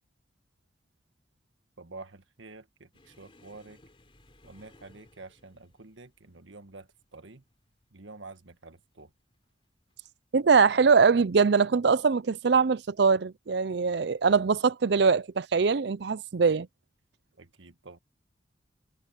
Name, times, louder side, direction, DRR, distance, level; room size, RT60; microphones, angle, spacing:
voice 1, 1.8-3.8 4.4-7.4 7.9-9.1 17.4-18.0, right 3 dB, 85° right, 1.6 m, -48 dB
sound 1, 2.9-10.2 10.5-10.8 11.2-11.3 12.2-12.7 13.7-13.9 15.3-15.4, left 1 dB, 30° left, 3.7 m, -61 dB
voice 2, 10.3-16.7, right 5 dB, 60° right, 0.5 m, -22 dB
head